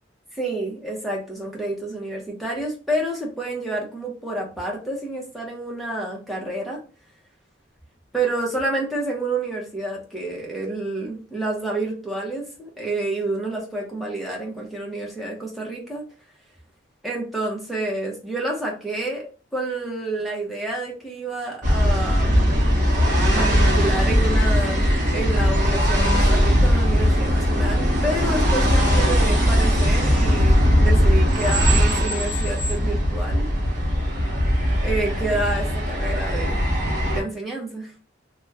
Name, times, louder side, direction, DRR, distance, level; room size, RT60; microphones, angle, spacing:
voice 1, 0.4-6.8 8.1-16.0 17.0-19.3 19.5-22.5 23.3-33.5 34.8-36.6 37.1-37.9, right 2 dB, ahead, -3 dB, 0.7 m, -29 dB
sound 1, 21.6-37.2, equal, 40° right, 0.9 m, -19 dB
2.9 x 2.2 x 3.4 m, 0.37 s
head